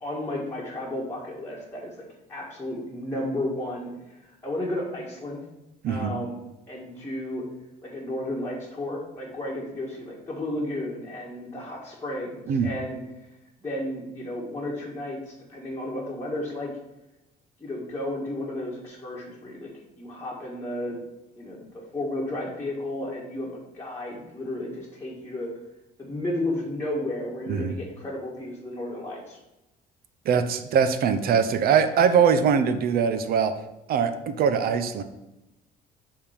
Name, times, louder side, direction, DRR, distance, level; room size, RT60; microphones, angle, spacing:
voice 1, 0.0-5.4 5.8-6.4 6.7-7.4 7.8-13.0 13.6-16.7 17.6-19.7 20.0-21.0 21.3-25.5 26.0-29.4, left 1 dB, 15° left, -6 dB, 1.6 m, -33 dB
voice 2, 5.8-6.2 12.5-12.7 27.5-27.8 30.3-33.5 33.9-35.0, right 7 dB, 65° right, 9 dB, 0.7 m, -22 dB
7.2 x 3.7 x 5.0 m, 0.95 s
cardioid pair, 110°, 17 cm